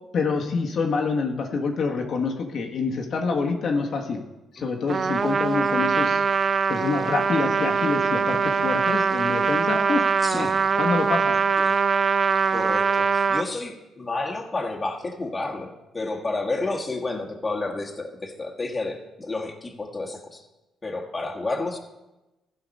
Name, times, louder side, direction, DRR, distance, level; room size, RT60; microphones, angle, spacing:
voice 1, 0.1-4.2 4.5-6.2 6.7-10.1 10.3-10.5 10.8-11.3, left 4 dB, 60° left, 0 dB, 1.4 m, -26 dB
Trumpet, 4.9-13.4, right 5 dB, 40° right, 0.4 m, -22 dB
voice 2, 10.2-10.6 11.6-11.8 12.5-20.4 20.8-21.8, left 2 dB, 25° left, 1 dB, 1.7 m, -31 dB
15.0 x 5.7 x 5.4 m, 1.0 s
cardioid pair, 90°, 0 cm